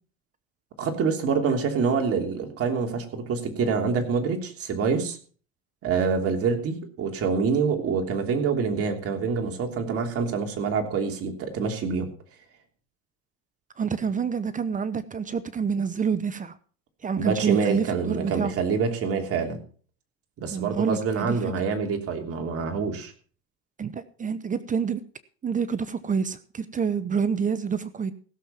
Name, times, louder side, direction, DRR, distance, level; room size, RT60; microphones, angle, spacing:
voice 1, 0.8-5.2 5.8-12.1 17.2-19.6 20.4-23.1, right 5 dB, 50° right, 4 dB, 3.1 m, -26 dB
voice 2, 13.8-16.5 17.0-18.5 20.5-21.4 23.8-25.0 25.4-28.1, right 6 dB, 25° right, 15 dB, 0.8 m, -27 dB
16.0 x 7.4 x 5.8 m, 0.41 s
supercardioid pair, 105°, 30 cm